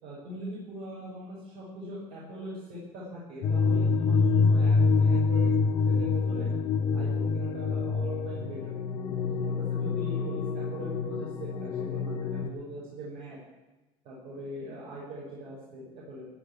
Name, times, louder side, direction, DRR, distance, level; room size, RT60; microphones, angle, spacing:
voice 1, 0.0-5.5 5.9-6.5 6.9-8.7 9.1-13.4 14.0-16.3, equal, 55° right, -7 dB, 6.2 m, -41 dB
sound 1, 3.4-12.5, left 4 dB, 40° left, 1.3 m, -26 dB
16.5 x 6.5 x 9.6 m, 1.1 s
cardioid pair, 150°, 12 cm